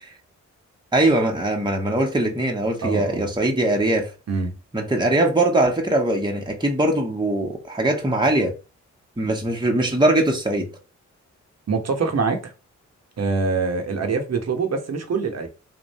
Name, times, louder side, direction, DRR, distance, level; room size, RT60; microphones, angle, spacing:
voice 1, 0.9-4.1 4.7-8.5 9.2-10.7, right 1 dB, 15° right, 1.1 m, -21 dB
voice 2, 2.8-3.3 4.3-4.6 11.7-12.5 13.2-15.5, right 4 dB, 60° right, 1.1 m, -24 dB
3.6 x 2.6 x 4.1 m
cardioid pair, 70°, 30 cm